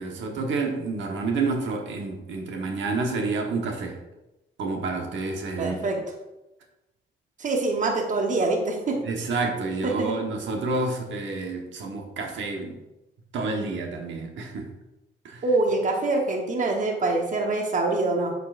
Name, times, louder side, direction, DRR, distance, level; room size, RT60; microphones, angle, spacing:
voice 1, 0.0-4.0 4.6-5.8 9.0-12.8 13.3-14.7 15.2-15.4, right 3 dB, 70° right, 2 dB, 1.2 m, -29 dB
voice 2, 5.6-6.0 7.4-9.1 9.8-10.2 15.4-18.3, right 2 dB, 40° right, 2 dB, 1.1 m, -25 dB
7.4 x 6.5 x 2.5 m, 0.98 s
cardioid pair, 90°, 20 cm